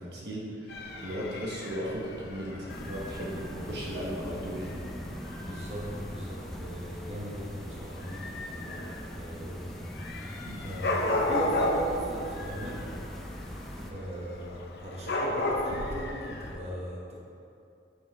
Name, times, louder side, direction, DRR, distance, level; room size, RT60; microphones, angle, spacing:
voice 1, 0.0-4.8 10.4-10.6, equal, 60° right, -4 dB, 1.2 m, -36 dB
Dog / Cat, 0.7-16.6, left 1 dB, 55° left, 0.7 m, -35 dB
sound 1, 2.7-13.9, equal, ahead, 0.4 m, -41 dB
voice 2, 5.4-9.9 10.6-12.9 13.9-17.1, right 1 dB, 35° right, -5 dB, 1.2 m, -39 dB
8.2 x 5.8 x 3.6 m, 2.6 s
head